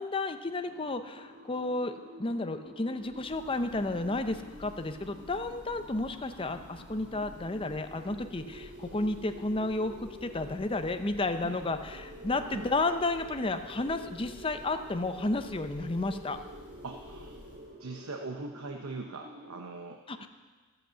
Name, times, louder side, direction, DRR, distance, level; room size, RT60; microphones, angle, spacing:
voice 1, 0.0-16.4 20.1-20.3, left 2 dB, 25° left, 8 dB, 0.6 m, -32 dB
sound 1, 0.6-19.7, right 1 dB, 55° right, 1.6 m, -49 dB
Church bell, 3.0-17.9, equal, 5° right, 2.3 m, -52 dB
voice 2, 16.8-17.4 17.8-20.3, right 3 dB, 75° right, 4 dB, 0.8 m, -41 dB
12.5 x 7.9 x 7.5 m, 1.4 s
head